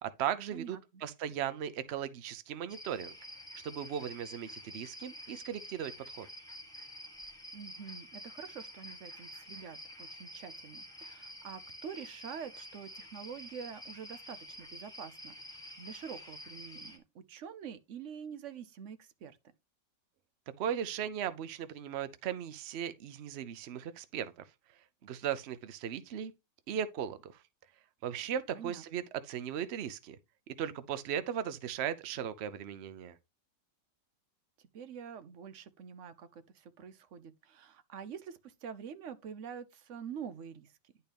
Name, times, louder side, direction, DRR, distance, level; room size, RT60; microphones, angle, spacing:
voice 1, 0.0-3.1 3.6-5.9 6.2-6.3 20.6-24.3 25.0-26.3 26.7-27.3 28.0-30.2 30.6-33.2, right 9 dB, 85° right, 0.5 m, -37 dB
sound 1, 2.7-17.0, equal, ahead, 1.1 m, -49 dB
voice 2, 7.5-19.4 28.5-28.8 34.6-40.7, right 7 dB, 60° right, 0.8 m, -46 dB
10.5 x 4.5 x 3.4 m
omnidirectional pair, 1.9 m